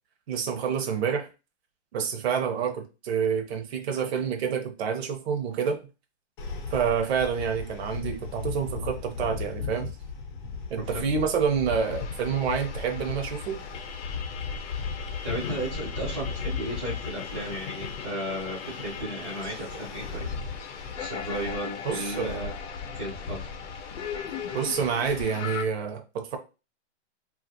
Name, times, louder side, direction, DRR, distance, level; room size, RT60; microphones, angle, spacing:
voice 1, 0.3-1.3 1.9-5.8 6.7-9.9 10.7-13.6 21.8-22.5 24.5-26.4, right 6 dB, 60° right, 0.7 m, -28 dB
sound 1, 6.4-25.2, left 4 dB, 45° left, 0.7 m, -37 dB
sound 2, 11.7-25.6, left 7 dB, 85° left, 0.7 m, -39 dB
voice 2, 15.2-20.3 21.0-22.5 22.9-23.4, right 1 dB, 5° right, 0.3 m, -34 dB
2.9 x 2.4 x 2.6 m
hypercardioid pair, 160°, 34 cm